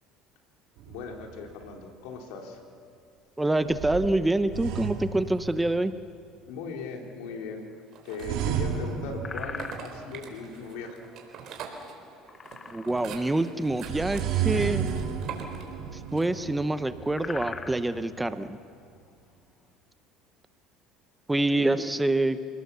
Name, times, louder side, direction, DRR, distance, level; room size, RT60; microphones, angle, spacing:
sound 1, 0.8-1.7 3.7-6.0 8.2-10.3 13.7-18.4, right 8 dB, 75° right, 3.1 m, -33 dB
voice 1, 0.9-2.6 6.5-7.7 8.0-11.0 21.5-21.9, left 4 dB, 80° left, 2 dB, 3.5 m, -38 dB
voice 2, 3.4-5.9 12.7-14.9 16.1-18.6 21.3-22.4, right 2 dB, 10° right, 11 dB, 0.9 m, -26 dB
sound 2, 7.6-8.2 8.5-8.8 9.2-10.3 12.1-13.2 13.5-13.6 13.9-14.2 15.1-16.2 16.5-16.6 16.9-19.7, left 5 dB, 30° left, 1.1 m, -41 dB
sound 3, 7.9-8.8 9.4-16.5, right 6 dB, 55° right, 3.9 m, -44 dB
28.5 x 19.0 x 7.0 m, 2.3 s
supercardioid pair, 105°, 0 cm